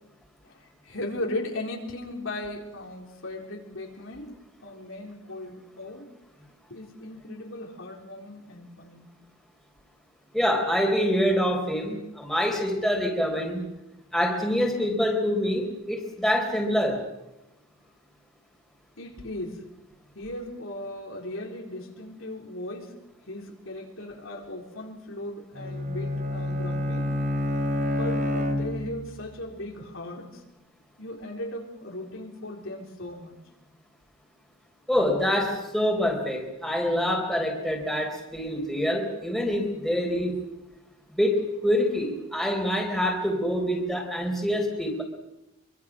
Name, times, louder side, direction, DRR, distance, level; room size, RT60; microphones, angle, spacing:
voice 1, 0.4-6.1 6.7-9.0 19.0-19.7 20.1-22.9 23.3-27.1 27.9-30.4 31.0-33.4, left 1 dB, 65° left, 0 dB, 4.2 m, -37 dB
voice 2, 10.3-13.7 14.1-17.0 34.9-40.3 41.2-45.0, equal, ahead, 0 dB, 4.2 m, -26 dB
Bowed string instrument, 25.6-29.2, left 1 dB, 40° right, 2.7 m, -28 dB
26.0 x 24.0 x 6.2 m, 0.94 s
head